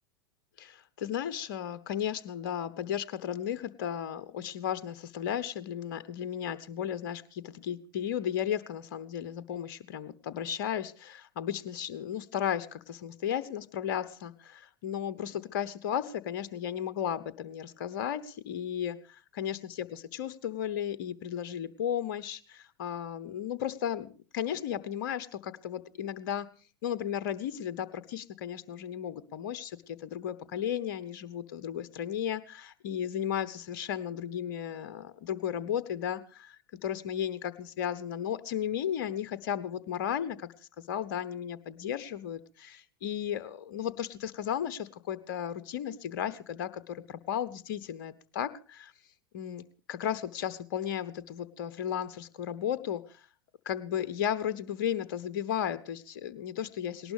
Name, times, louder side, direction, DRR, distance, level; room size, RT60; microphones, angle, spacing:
voice 1, 0.6-24.1 24.3-26.5 26.8-40.5 40.8-48.9 49.3-53.2 53.6-57.1, left 9 dB, 55° left, 15 dB, 0.9 m, -34 dB
19.0 x 18.5 x 3.4 m, 0.37 s
figure-of-eight pair, 85°, 12 cm